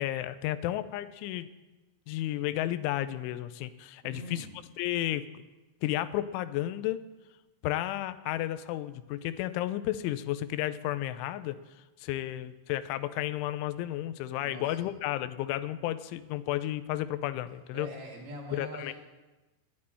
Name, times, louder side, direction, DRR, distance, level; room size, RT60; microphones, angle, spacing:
voice 1, 0.0-1.5 2.1-4.5 4.8-5.2 5.8-7.1 7.6-11.6 12.0-17.9 18.5-18.9, left 14 dB, 85° left, 13 dB, 3.1 m, -32 dB
voice 2, 4.0-4.6 14.4-14.8 17.7-18.9, equal, 50° right, 0 dB, 3.8 m, -43 dB
12.5 x 10.0 x 9.9 m, 1.1 s
omnidirectional pair, 5.4 m